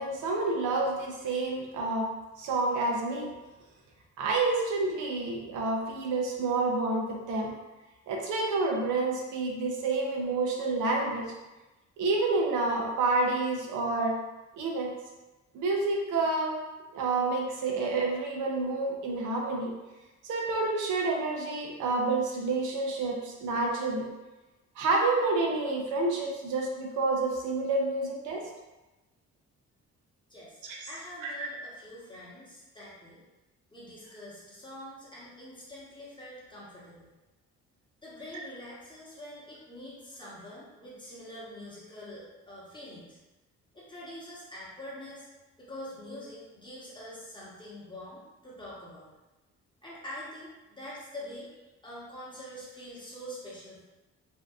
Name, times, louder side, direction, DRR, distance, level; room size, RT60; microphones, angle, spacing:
voice 1, 0.0-2.1 2.4-3.3 4.2-7.5 8.1-11.2 12.0-14.2 14.6-14.9 15.5-16.6 16.9-19.7 20.2-24.0 24.8-28.4 30.7-30.8 31.2-31.5, right 3 dB, 85° right, 0 dB, 0.6 m, -29 dB
voice 2, 30.3-33.2 33.7-37.1 38.0-43.2 43.7-45.3 45.6-49.1 49.8-53.8, left 1 dB, 15° left, -7 dB, 0.9 m, -45 dB
2.6 x 2.2 x 2.3 m, 1.1 s
cardioid pair, 90°, 30 cm